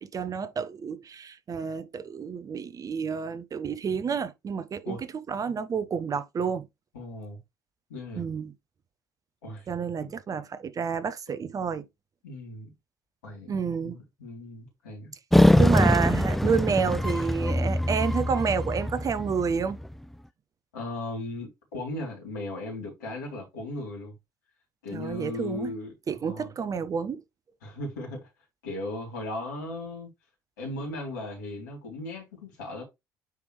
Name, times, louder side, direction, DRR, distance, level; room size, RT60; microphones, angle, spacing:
voice 1, 0.0-5.0 5.3-6.6 8.2-8.5 9.7-11.8 13.5-13.9 15.6-19.8 24.9-25.7 26.1-27.2, right 6 dB, 35° right, 0.9 m, -29 dB
voice 2, 6.9-7.4 7.9-8.2 9.4-9.7 10.0-10.1 12.2-12.7 13.2-15.1 20.7-24.1 24.8-26.5 27.6-28.2 28.6-30.1 30.6-32.8, left 2 dB, 75° left, 3.1 m, -37 dB
sound 1, 15.3-19.9, left 1 dB, ahead, 0.3 m, -23 dB
9.3 x 3.5 x 3.2 m
figure-of-eight pair, 50°, 10 cm